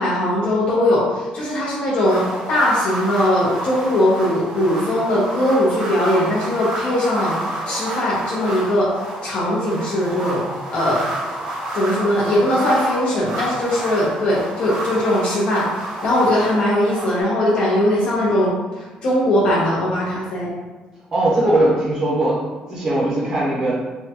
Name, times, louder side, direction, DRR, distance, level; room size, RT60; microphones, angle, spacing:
voice 1, 0.0-7.4 7.6-8.9 9.2-10.4 10.7-11.0 11.7-18.5 18.8-20.5, left 1 dB, 50° left, -6 dB, 0.7 m, -20 dB
sound 1, 2.0-17.2, right 1 dB, 90° right, 1.5 m, -30 dB
voice 2, 21.1-22.4 22.7-23.7, right 1 dB, 30° right, -8 dB, 0.7 m, -19 dB
3.6 x 2.2 x 2.8 m, 1.3 s
cardioid pair, 180°, 3 cm